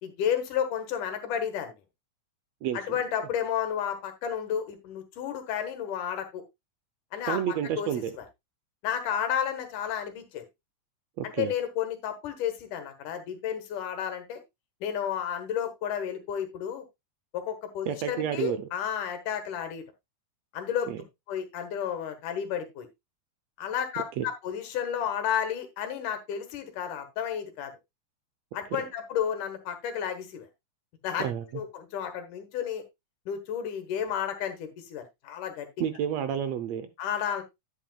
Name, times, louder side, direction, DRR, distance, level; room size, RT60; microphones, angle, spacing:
voice 1, 0.0-1.8 2.7-6.4 7.1-7.9 8.2-8.3 8.8-10.4 11.2-14.4 14.8-16.8 17.3-19.8 20.5-21.0 21.3-22.9 23.6-27.7 28.5-30.5 31.0-31.3 31.5-32.8 33.3-35.7 37.0-37.4, left 8 dB, 85° left, 8 dB, 3.0 m, -32 dB
voice 2, 2.6-3.0 7.3-8.1 11.2-11.5 17.9-18.7 20.9-21.0 24.2-24.3 28.7-28.8 31.2-31.4 35.8-36.9, right 9 dB, 75° right, 11 dB, 1.7 m, -30 dB
10.5 x 8.7 x 2.3 m, 0.21 s
omnidirectional pair, 3.5 m